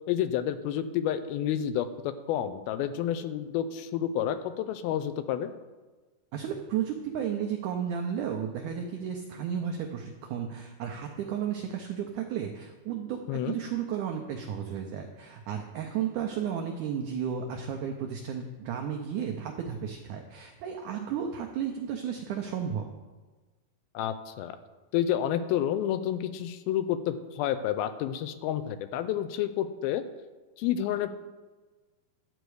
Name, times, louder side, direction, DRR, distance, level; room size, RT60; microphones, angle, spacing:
voice 1, 0.1-5.5 13.3-13.6 23.9-24.6 24.9-30.0 30.6-31.1, left 10 dB, 85° left, 11 dB, 2.4 m, -30 dB
voice 2, 6.3-22.9, right 8 dB, 85° right, 3 dB, 1.7 m, -33 dB
11.5 x 7.8 x 4.8 m, 1.3 s
omnidirectional pair, 4.4 m